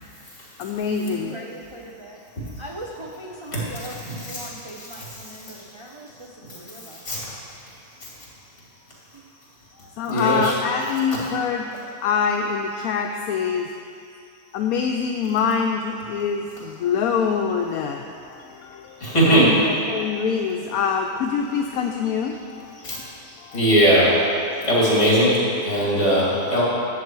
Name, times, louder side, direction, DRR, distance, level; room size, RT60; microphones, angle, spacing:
voice 1, 0.6-1.3 10.0-11.7 12.0-13.7 14.5-23.6, left 6 dB, 75° left, 3 dB, 1.0 m, -25 dB
voice 2, 1.1-7.2 9.1-9.2 10.6-11.0 11.7-11.8, right 1 dB, 50° right, -2 dB, 0.3 m, -40 dB
voice 3, 4.0-4.5 4.8-4.9 5.3-5.6 6.7-7.2 8.0-8.1 9.8-10.5 19.0-19.5 22.8-24.2 24.6-26.6, right 1 dB, 50° left, -6 dB, 3.1 m, -21 dB
11.0 x 7.7 x 4.6 m, 2.5 s
omnidirectional pair, 1.6 m